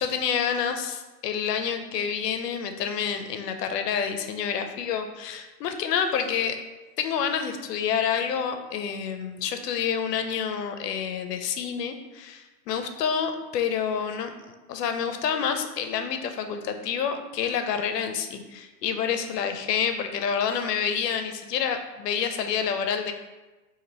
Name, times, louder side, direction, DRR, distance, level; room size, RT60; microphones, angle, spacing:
voice 1, 0.0-6.6 7.0-14.3 14.7-23.1, left 7 dB, 80° left, 6 dB, 0.6 m, -28 dB
2.9 x 2.7 x 4.0 m, 1.1 s
hypercardioid pair, 150°, 48 cm